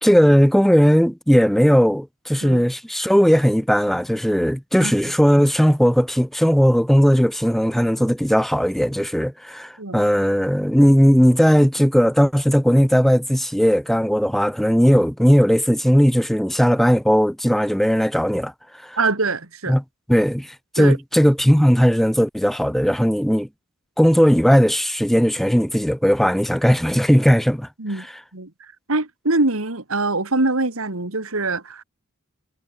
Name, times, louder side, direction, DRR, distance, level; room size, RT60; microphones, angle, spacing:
voice 1, 0.0-18.5 18.8-19.0 19.7-19.8 20.1-23.5 24.0-27.7 28.0-28.1, equal, ahead, 0.9 m, -17 dB
voice 2, 19.0-19.7 20.8-21.0 27.8-28.1 28.3-28.5 28.9-31.8, right 2 dB, 80° right, 2.5 m, -23 dB
head